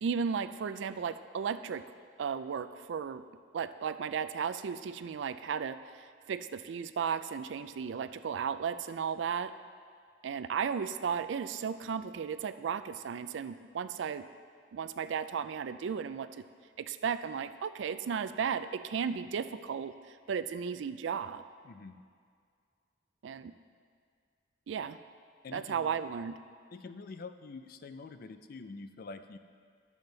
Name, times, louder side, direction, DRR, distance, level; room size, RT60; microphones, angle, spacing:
voice 1, 0.0-1.8 2.2-3.2 3.5-9.5 10.2-14.3 14.7-16.4 16.8-21.4 23.2-23.5 24.7-25.0 25.5-26.4, right 6 dB, 75° right, 12 dB, 0.4 m, -35 dB
voice 2, 21.6-22.0 25.4-26.0 26.7-29.4, left 4 dB, 50° left, 9 dB, 0.4 m, -46 dB
11.0 x 7.2 x 3.9 m, 2.1 s
head